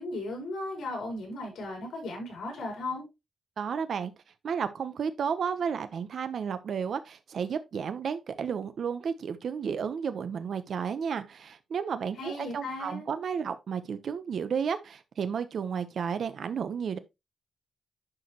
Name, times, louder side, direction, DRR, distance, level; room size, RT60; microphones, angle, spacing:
voice 1, 0.0-3.0 12.2-13.1, left 2 dB, 80° left, 4.9 m, -36 dB
voice 2, 3.6-4.1 4.4-17.0, right 7 dB, 60° right, 0.9 m, -32 dB
11.0 x 5.0 x 3.0 m
wide cardioid pair, 140°, 0 cm